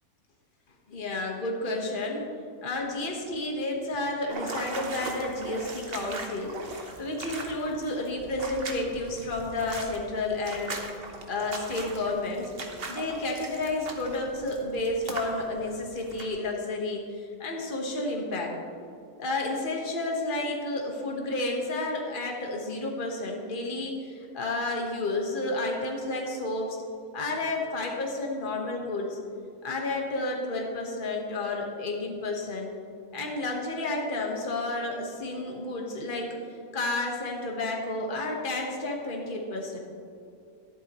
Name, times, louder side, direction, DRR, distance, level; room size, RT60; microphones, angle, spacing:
voice 1, 0.9-2.2 2.6-10.8 11.3-12.5 12.9-18.5 19.2-26.8 27.1-29.2 29.6-32.7 33.1-36.4 36.7-39.8, left 2 dB, 35° left, 0 dB, 1.5 m, -31 dB
sound 1, 4.3-16.3, right 3 dB, 45° right, 1.2 m, -40 dB
13.5 x 11.0 x 3.1 m, 2.5 s
omnidirectional pair, 1.6 m